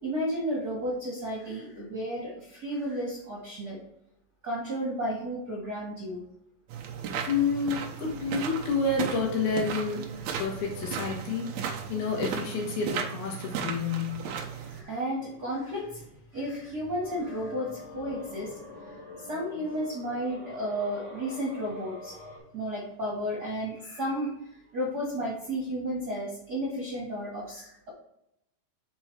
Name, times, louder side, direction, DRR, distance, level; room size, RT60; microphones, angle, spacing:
voice 1, 0.0-3.8 4.4-6.2 14.5-16.1 16.3-18.5 19.3-22.2 22.5-24.3 24.7-27.9, equal, 40° right, -5 dB, 1.5 m, -33 dB
sound 1, 6.7-14.8, right 7 dB, 80° right, 1.6 m, -35 dB
voice 2, 7.3-10.0 10.4-11.5 11.9-14.2, left 4 dB, 85° left, -1 dB, 3.6 m, -29 dB
sound 2, 17.0-22.4, left 2 dB, 55° left, 3.9 m, -45 dB
6.9 x 4.3 x 4.7 m, 0.81 s
omnidirectional pair, 4.3 m